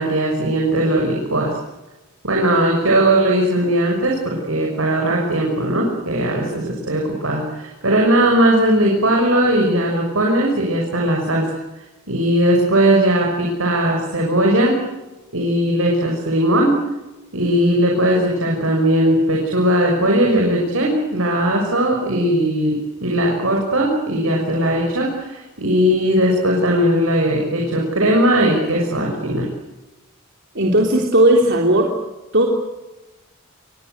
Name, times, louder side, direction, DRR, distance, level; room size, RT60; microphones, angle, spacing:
voice 1, 0.0-1.6 2.2-11.5 12.1-14.8 15.3-16.7 17.3-29.5, right 1 dB, 70° right, -1 dB, 6.5 m, -18 dB
voice 2, 30.6-31.9 32.3-32.5, right 1 dB, 50° right, 0 dB, 3.6 m, -15 dB
28.5 x 22.5 x 8.2 m, 1.1 s
head